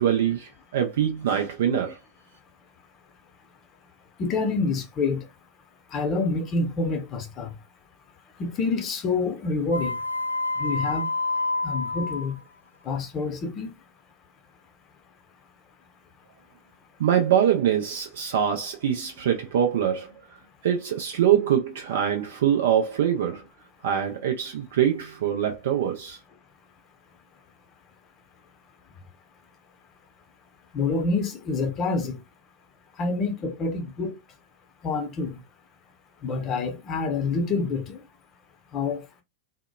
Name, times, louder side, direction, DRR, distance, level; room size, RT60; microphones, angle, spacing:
voice 1, 0.0-2.0 17.0-20.1 20.6-23.4 23.8-26.2, right 9 dB, 60° right, 0.4 m, -24 dB
voice 2, 4.2-5.3 5.9-7.5 8.4-10.0 10.6-11.1 11.6-12.4 12.8-13.7 30.7-32.2 33.0-34.2 34.8-35.4 36.2-38.0 38.7-39.0, left 3 dB, 30° left, 0.6 m, -27 dB
sound 1, 9.7-12.3, left 3 dB, 85° left, 0.3 m, -28 dB
2.8 x 2.0 x 2.2 m
figure-of-eight pair, 90°, 0 cm